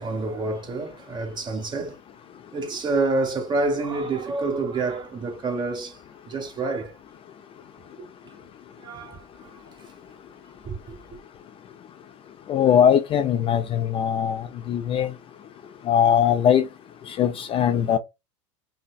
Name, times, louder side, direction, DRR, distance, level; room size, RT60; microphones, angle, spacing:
voice 1, 0.0-2.0 2.5-6.0 6.3-6.9 8.8-9.5 10.7-10.9, right 3 dB, 25° right, 1.2 m, -28 dB
voice 2, 12.5-15.1 15.9-16.7 17.1-18.0, left 9 dB, 35° left, 0.4 m, -20 dB
5.5 x 2.0 x 2.3 m
supercardioid pair, 110°, 17 cm